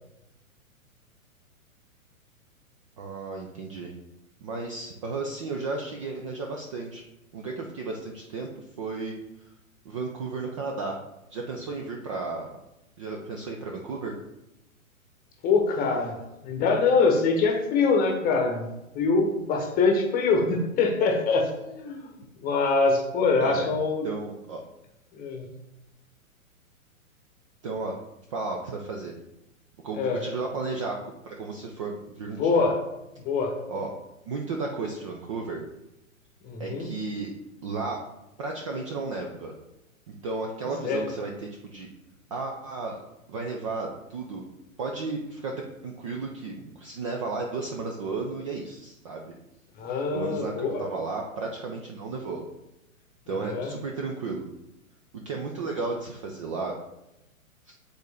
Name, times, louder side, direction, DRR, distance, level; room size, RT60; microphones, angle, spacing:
voice 1, 3.0-3.9 4.4-7.0 7.3-8.5 8.8-9.1 9.9-11.0 11.3-12.6 13.0-14.2 23.4-23.7 24.0-24.6 27.6-28.0 28.3-29.1 29.8-32.6 33.7-33.9 34.3-35.6 36.6-37.3 37.6-38.0 38.4-39.5 40.2-41.9 42.3-43.0 43.3-44.4 44.8-45.5 45.8-49.3 50.1-52.4 53.3-54.5 55.3-56.7 57.7-57.8, right 3 dB, 25° right, 1 dB, 0.4 m, -33 dB
voice 2, 15.4-16.2 16.4-18.7 18.9-22.1 22.4-24.1 25.1-25.5 30.0-30.2 32.4-32.8 33.1-33.5 36.4-36.9 40.8-41.0 49.8-50.8 53.4-53.7, left 4 dB, 20° left, 2 dB, 1.1 m, -24 dB
8.0 x 3.9 x 3.4 m, 0.92 s
figure-of-eight pair, 115°, 42 cm